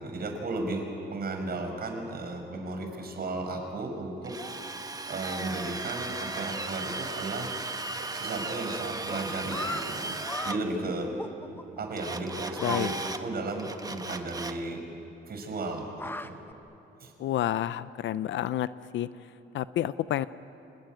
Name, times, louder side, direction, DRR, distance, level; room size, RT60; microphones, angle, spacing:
voice 1, 0.0-4.3 5.1-7.5 8.1-10.1 10.4-11.2 11.8-12.9 13.2-14.8 15.3-16.4 17.0-17.1, right 2 dB, 50° right, 4 dB, 5.4 m, -34 dB
Drill, 4.2-10.6 12.0-13.2 13.6-14.6, right 2 dB, 20° right, 1.4 m, -36 dB
sound 1, 8.0-13.1, right 4 dB, 90° right, 7.0 m, -45 dB
sound 2, 9.1-9.9 10.3-10.6 11.2-11.8 12.6-12.8 13.1-13.2 13.5-13.6 13.9-14.0 15.7-16.5, left 2 dB, 10° left, 1.3 m, -36 dB
voice 2, 17.2-18.7 18.9-19.1 19.5-20.3, left 12 dB, 70° left, 16 dB, 0.6 m, -29 dB
28.0 x 19.5 x 9.4 m, 2.9 s
cardioid pair, 90°, 20 cm